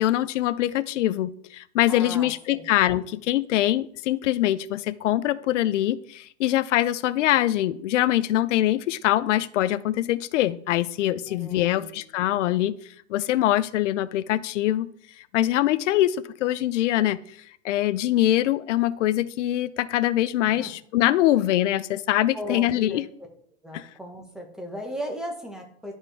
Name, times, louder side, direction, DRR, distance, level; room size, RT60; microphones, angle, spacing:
voice 1, 0.0-12.7 13.1-14.9 15.3-17.2 17.6-23.0 23.7-23.9, left 14 dB, 85° left, 16 dB, 0.5 m, -23 dB
voice 2, 1.9-2.6 11.2-11.9 20.4-20.7 22.3-23.0 23.6-25.9, equal, ahead, 2 dB, 1.2 m, -36 dB
11.5 x 4.4 x 3.4 m, 0.62 s
supercardioid pair, 135°, 36 cm